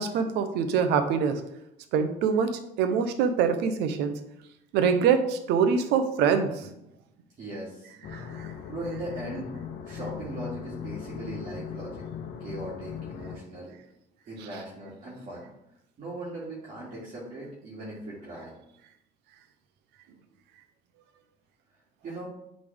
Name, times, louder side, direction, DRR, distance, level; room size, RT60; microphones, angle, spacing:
voice 1, 0.0-1.4 1.9-2.5 2.8-4.1 4.7-6.7 8.1-8.5, right 6 dB, 90° right, 8 dB, 0.8 m, -24 dB
voice 2, 7.4-7.9 8.7-9.5 9.8-12.0 12.4-13.7 14.3-15.5 16.0-18.5 22.0-22.3, right 1 dB, 50° right, -8 dB, 2.4 m, -38 dB
sound 1, 8.0-13.4, left 7 dB, 75° left, 0.8 m, -39 dB
8.5 x 4.1 x 3.5 m, 0.81 s
cardioid pair, 110°, 17 cm